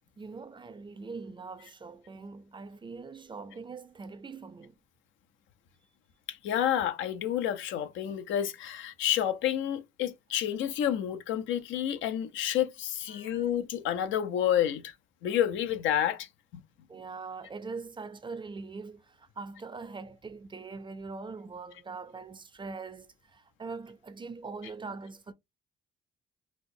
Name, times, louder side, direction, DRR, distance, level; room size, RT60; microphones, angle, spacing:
voice 1, 0.2-4.8 13.1-13.4 16.9-25.3, right 4 dB, 25° right, 0.5 m, -42 dB
voice 2, 6.3-14.9 15.2-16.3, left 10 dB, 80° left, 0.6 m, -29 dB
4.2 x 2.1 x 2.6 m
cardioid pair, 85°, 19 cm